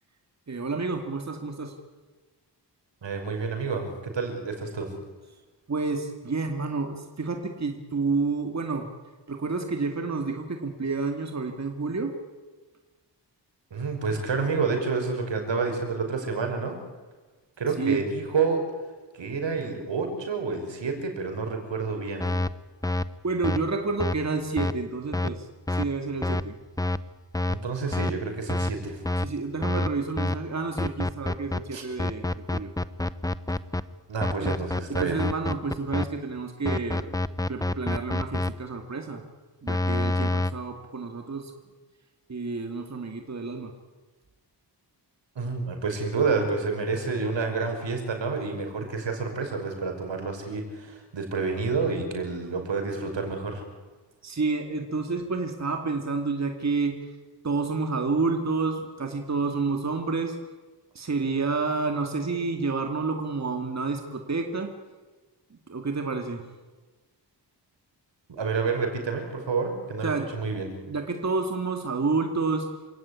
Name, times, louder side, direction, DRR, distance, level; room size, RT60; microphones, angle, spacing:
voice 1, 0.5-1.7 5.7-8.9 9.3-12.1 17.8-18.0 23.2-26.6 29.2-32.7 34.4-34.5 34.9-37.2 37.5-39.2 39.6-41.5 42.3-43.7 54.2-57.1 57.4-60.4 60.9-64.7 65.7-66.4 70.0-70.3 70.9-72.7, right 4 dB, 40° right, 4 dB, 2.3 m, -29 dB
voice 2, 3.0-4.9 13.7-16.8 17.6-18.6 19.1-22.3 27.5-29.0 31.7-31.8 34.1-35.2 45.4-53.6 68.3-70.7, right 4 dB, 80° right, 4 dB, 5.7 m, -29 dB
sound 1, 22.2-22.5 22.8-23.0 23.4-23.6 24.0-24.2 24.6-24.7 25.1-25.3 25.7-25.8 26.2-26.4 26.8-27.0 27.3-27.6 27.9-28.1 28.5-28.7 29.0-29.3 29.6-29.9 30.2-30.3 30.8-31.6 32.0-33.8 34.2-36.0 36.7-38.5 39.7-40.5, left 2 dB, 10° left, 0.7 m, -26 dB
27.5 x 17.0 x 9.8 m, 1.3 s
wide cardioid pair, 140°, 43 cm